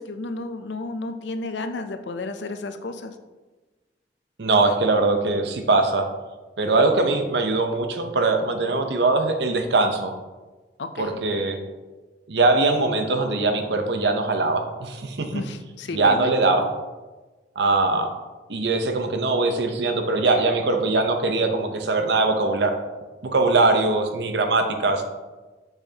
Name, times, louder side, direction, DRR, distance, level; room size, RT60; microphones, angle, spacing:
voice 1, 0.0-3.1 10.8-11.1 15.3-16.6, left 2 dB, 85° left, 8 dB, 0.6 m, -32 dB
voice 2, 4.4-6.1 6.6-10.1 11.0-11.6 12.3-15.3 15.9-16.7 17.6-18.1 18.5-22.7 23.2-25.1, right 3 dB, 70° right, 5 dB, 0.8 m, -21 dB
7.0 x 5.7 x 2.9 m, 1.2 s
head